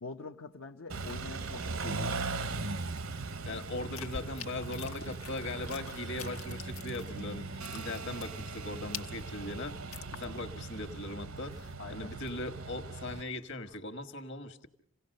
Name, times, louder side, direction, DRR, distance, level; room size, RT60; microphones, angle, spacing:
voice 1, 0.0-2.3 11.8-12.1, left 3 dB, 75° left, 1 dB, 0.8 m, -44 dB
Car / Idling / Accelerating revving vroom, 0.9-13.2, right 3 dB, 70° right, 0.8 m, -39 dB
sound 1, 3.0-7.3 7.6-10.6 10.9-11.0 11.4-12.5 12.9-13.8, left 7 dB, 90° left, 1.2 m, -47 dB
voice 2, 3.4-7.4 7.7-9.8 10.1-14.7, left 2 dB, 60° left, 9 dB, 1.4 m, -39 dB
sound 2, 7.6-10.5, right 6 dB, 90° right, 1.2 m, -49 dB
28.0 x 17.0 x 6.5 m, 0.68 s
head